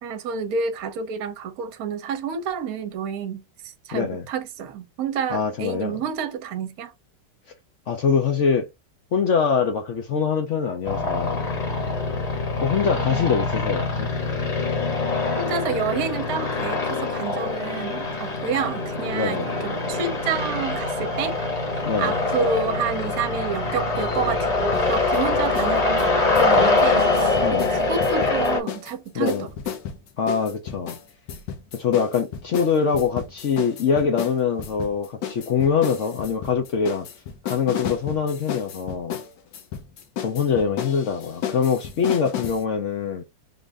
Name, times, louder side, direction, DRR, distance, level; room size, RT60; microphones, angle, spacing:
voice 1, 0.0-6.9 12.9-13.3 15.4-21.4 21.7-26.1 26.4-29.5, right 6 dB, 65° right, 1.2 m, -29 dB
voice 2, 3.9-4.2 5.3-6.0 7.9-8.7 9.1-11.4 12.6-14.1 19.1-19.5 21.9-22.1 27.4-27.7 29.1-29.5 30.2-31.0 31.7-37.1 37.4-39.2 40.2-43.2, left 6 dB, 65° left, 0.8 m, -23 dB
sound 1, 10.8-28.6, left 3 dB, 30° left, 1.0 m, -24 dB
sound 2, 24.7-25.7 26.0-28.9 29.3-42.6, left 8 dB, 80° left, 1.4 m, -33 dB
3.8 x 2.5 x 3.2 m
omnidirectional pair, 1.9 m